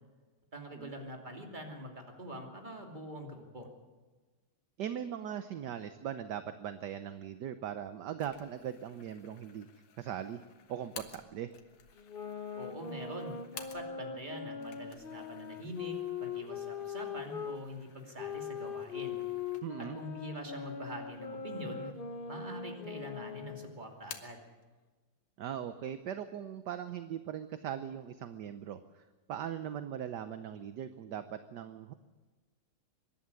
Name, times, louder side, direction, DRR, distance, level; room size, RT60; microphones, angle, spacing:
voice 1, 0.5-3.7 12.5-16.0 16.2-19.2 19.8-21.9 22.3-24.4, equal, 20° right, 3 dB, 2.8 m, -44 dB
voice 2, 4.8-9.7 10.0-10.4 10.7-11.5 19.6-20.0 25.4-31.9, right 9 dB, 60° right, 11 dB, 1.2 m, -40 dB
sound 1, 8.2-14.2 14.5-20.0 20.4-20.5 21.3-22.0 22.3-23.1 23.4-24.5, left 7 dB, 85° left, 2.4 m, -54 dB
sound 2, 12.0-17.6 18.2-23.8, left 7 dB, 40° left, 0.8 m, -41 dB
24.5 x 11.5 x 9.7 m, 1.3 s
omnidirectional pair, 2.4 m